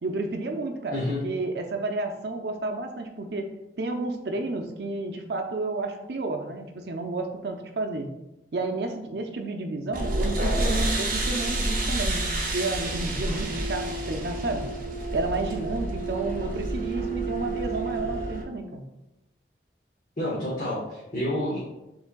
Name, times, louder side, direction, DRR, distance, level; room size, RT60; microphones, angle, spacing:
voice 1, 0.0-3.5 3.8-8.1 8.5-12.3 12.5-14.6 15.1-18.8, right 2 dB, 70° right, 3 dB, 0.5 m, -31 dB
voice 2, 0.9-1.2 20.2-21.6, left 1 dB, 45° left, -5 dB, 0.9 m, -29 dB
sound 1, 9.9-18.4, right 2 dB, 50° right, 0.9 m, -29 dB
7.1 x 3.2 x 2.2 m, 0.94 s
head